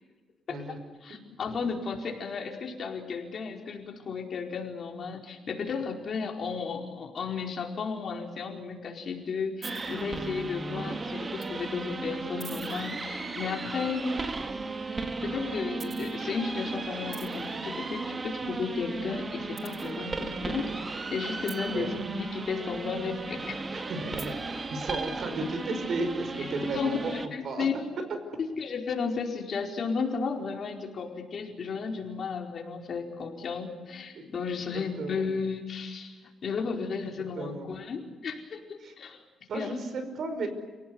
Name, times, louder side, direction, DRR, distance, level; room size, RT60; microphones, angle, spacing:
voice 1, 0.5-0.8 21.7-21.9 23.7-24.4 24.7-27.1 27.4-27.7 34.1-34.3 34.7-35.3 37.4-37.7 38.8-38.9 39.5-40.5, right 3 dB, 60° right, 8 dB, 5.3 m, -34 dB
voice 2, 1.0-14.2 15.0-23.6 26.4-27.7 28.4-36.2 36.4-39.2 39.5-39.7, left 5 dB, 50° left, 2 dB, 4.7 m, -34 dB
sound 1, 9.6-27.3, right 3 dB, 30° right, 1.8 m, -35 dB
29.5 x 18.0 x 9.6 m, 1.4 s
cardioid pair, 115°, 0 cm